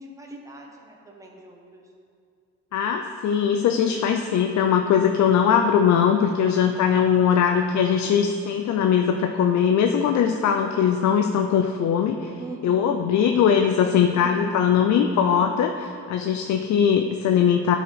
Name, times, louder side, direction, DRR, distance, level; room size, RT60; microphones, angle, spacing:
voice 1, 0.0-1.8 6.3-7.2 12.4-12.9 14.0-14.6, right 1 dB, 10° right, -1 dB, 1.1 m, -41 dB
voice 2, 2.7-12.3 12.6-17.8, left 8 dB, 70° left, 5 dB, 0.5 m, -20 dB
11.5 x 4.8 x 4.1 m, 2.3 s
cardioid pair, 90°, 30 cm